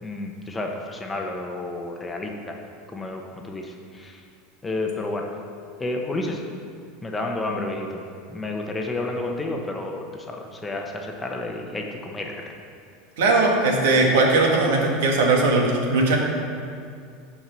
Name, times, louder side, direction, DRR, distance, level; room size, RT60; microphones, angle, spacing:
voice 1, 0.0-2.5 2.9-4.2 4.6-5.3 5.8-6.4 7.0-8.0 8.3-12.4, left 2 dB, 10° left, 1 dB, 1.0 m, -30 dB
voice 2, 13.2-16.2, right 2 dB, 85° right, 0 dB, 1.8 m, -19 dB
10.0 x 4.7 x 6.9 m, 2.3 s
supercardioid pair, 140°, 0 cm